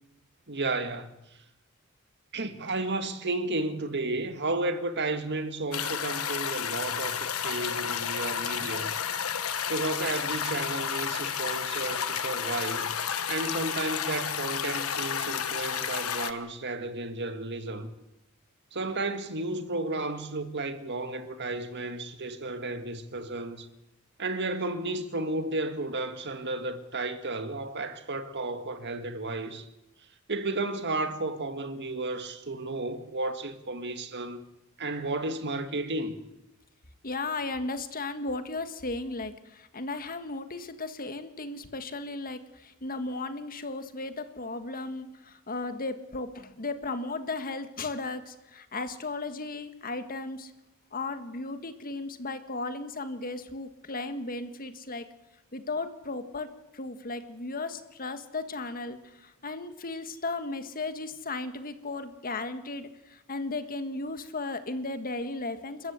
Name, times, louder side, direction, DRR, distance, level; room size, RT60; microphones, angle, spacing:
voice 1, 0.5-1.2 2.3-9.0 9.7-12.9 13.3-17.9 18.7-23.7 24.2-29.6 30.3-34.4 34.8-36.2, right 2 dB, 55° right, 1.8 m, -33 dB
sound 1, 5.7-16.3, left 8 dB, 75° left, 1.3 m, -31 dB
voice 2, 37.0-50.5 50.9-55.1 55.5-65.9, left 3 dB, 40° left, 1.8 m, -35 dB
30.0 x 14.0 x 8.2 m
head